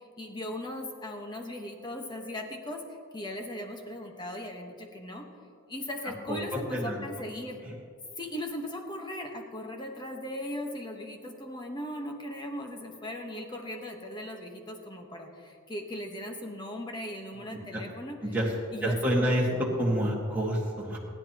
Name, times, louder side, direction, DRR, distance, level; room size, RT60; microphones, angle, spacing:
voice 1, 0.0-2.8 3.1-5.3 5.7-7.6 8.2-18.2 18.7-20.0, left 1 dB, 20° left, 2 dB, 1.3 m, -38 dB
voice 2, 6.3-7.0 17.5-17.8 18.2-18.5 18.8-21.0, equal, 5° right, -5 dB, 1.8 m, -28 dB
27.5 x 10.5 x 3.0 m, 2.4 s
head